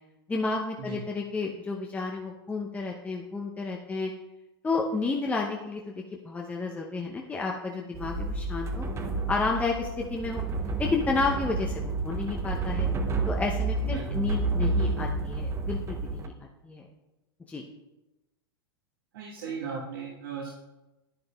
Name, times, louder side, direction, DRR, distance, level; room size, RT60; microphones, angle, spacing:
voice 1, 0.3-4.1 4.6-8.9 9.3-10.4 10.8-12.9 13.3-16.3 16.6-16.8 17.5-17.6, left 3 dB, 10° left, 0 dB, 0.7 m, -31 dB
sound 1, 7.9-16.3, right 3 dB, 20° right, 0.8 m, -30 dB
voice 2, 19.1-20.5, right 6 dB, 65° right, -4 dB, 1.4 m, -36 dB
10.0 x 9.6 x 2.3 m, 1.0 s
figure-of-eight pair, 95°, 13 cm